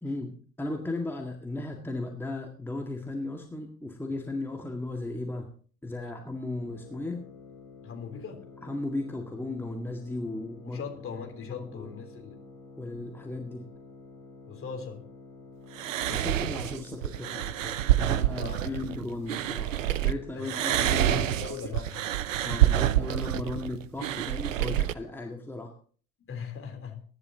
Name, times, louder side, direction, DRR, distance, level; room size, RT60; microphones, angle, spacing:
voice 1, 0.0-5.5 5.8-7.2 8.6-10.8 11.5-11.9 12.8-13.6 16.1-21.4 22.4-25.7, left 2 dB, 5° left, 2 dB, 1.9 m, -36 dB
sound 1, 6.6-21.1, left 3 dB, 60° left, 4.4 m, -50 dB
voice 2, 7.8-8.4 10.6-12.4 14.5-15.0 18.4-18.8 20.4-22.0 26.3-27.0, left 6 dB, 35° left, 3 dB, 3.7 m, -40 dB
sound 2, 15.8-20.1 20.4-24.9, right 13 dB, 75° right, 0.6 m, -27 dB
23.0 x 11.0 x 2.9 m, 0.44 s
figure-of-eight pair, 60°, 39 cm